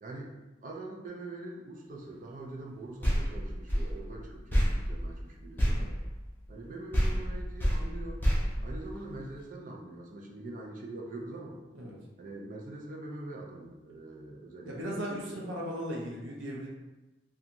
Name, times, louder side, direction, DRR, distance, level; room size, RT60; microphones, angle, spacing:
voice 1, 0.0-0.3 0.6-5.8 6.5-8.2 8.6-11.6 12.2-15.5, right 2 dB, 40° right, -1 dB, 0.4 m, -43 dB
sound 1, 3.0-6.6 6.9-9.4, equal, 10° left, 0.5 m, -29 dB
voice 2, 5.6-5.9 11.7-12.0 14.7-16.7, equal, 80° right, -3 dB, 0.7 m, -37 dB
2.5 x 2.3 x 2.8 m, 1.0 s
head